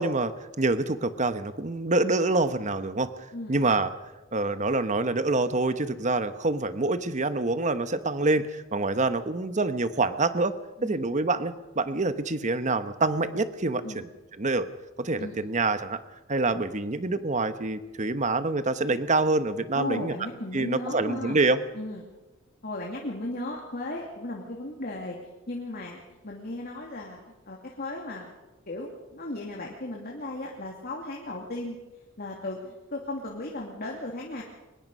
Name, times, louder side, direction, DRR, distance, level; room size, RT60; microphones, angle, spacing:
voice 1, 0.0-3.1 3.5-3.9 4.3-10.5 10.8-14.1 14.4-14.7 15.0-16.0 16.3-20.1 20.5-21.6, right 3 dB, 35° right, 11 dB, 1.1 m, -26 dB
voice 2, 19.7-21.4 21.7-22.0 22.6-25.2 25.5-27.2 27.5-28.3 28.7-31.8 32.2-34.4, left 1 dB, 45° left, -1 dB, 2.6 m, -36 dB
23.5 x 20.5 x 5.5 m, 1.1 s
head